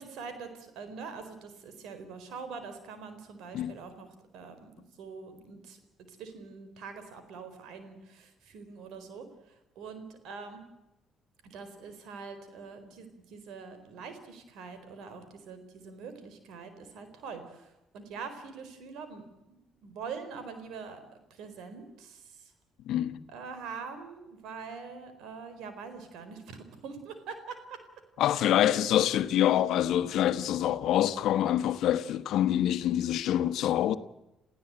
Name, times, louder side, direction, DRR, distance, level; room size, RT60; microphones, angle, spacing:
voice 1, 0.0-4.1 4.3-4.7 5.0-5.8 6.1-9.3 9.8-10.6 11.4-19.6 19.8-21.0 21.3-22.5 23.3-27.8, right 5 dB, 80° right, 4.3 m, -44 dB
voice 2, 22.9-23.2 28.2-34.0, left 11 dB, 75° left, 1.2 m, -26 dB
29.0 x 15.5 x 8.9 m
supercardioid pair, 65°, 0 cm